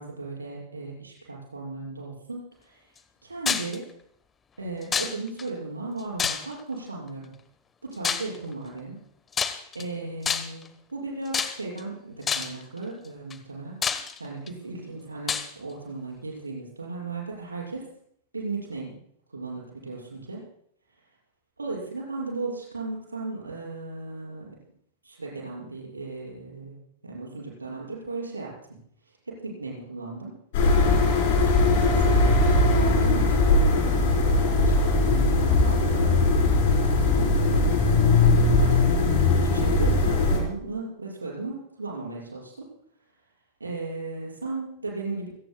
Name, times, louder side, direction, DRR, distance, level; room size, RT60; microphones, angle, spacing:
voice 1, 0.0-2.8 3.2-3.9 4.6-7.3 7.8-9.0 9.4-13.8 14.2-17.9 18.3-19.0 19.3-20.4 21.6-24.5 25.0-28.8 29.3-30.4 31.5-36.3 36.9-39.0 39.4-42.7 43.6-45.3, right 3 dB, 80° right, -4 dB, 6.0 m, -36 dB
sound 1, 3.5-3.8 4.9-5.4 6.2-6.7 8.0-8.4 9.3-9.8 10.2-10.7 11.3-11.8 12.3-12.6 13.3-13.4 13.8-14.5 15.3-15.5, left 6 dB, 20° left, 1.2 m, -27 dB
sound 2, 30.5-40.4, left 2 dB, 50° left, 4.4 m, -20 dB
27.5 x 17.5 x 2.3 m, 0.66 s
figure-of-eight pair, 90°, 0 cm